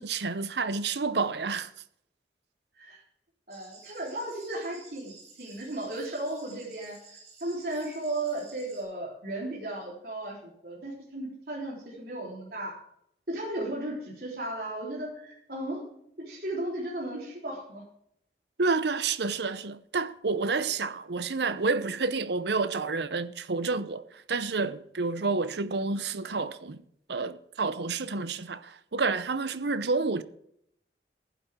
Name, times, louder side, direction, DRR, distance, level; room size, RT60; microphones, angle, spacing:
voice 1, 0.0-1.7 18.6-26.8 27.1-30.2, right 4 dB, 75° right, 0.8 m, -29 dB
sound 1, 3.5-8.8, right 4 dB, 35° right, 5.1 m, -53 dB
voice 2, 3.5-5.1 5.4-7.0 7.4-12.8 13.3-15.8 16.2-17.8, right 1 dB, 55° right, 3.9 m, -35 dB
15.5 x 11.0 x 3.7 m
head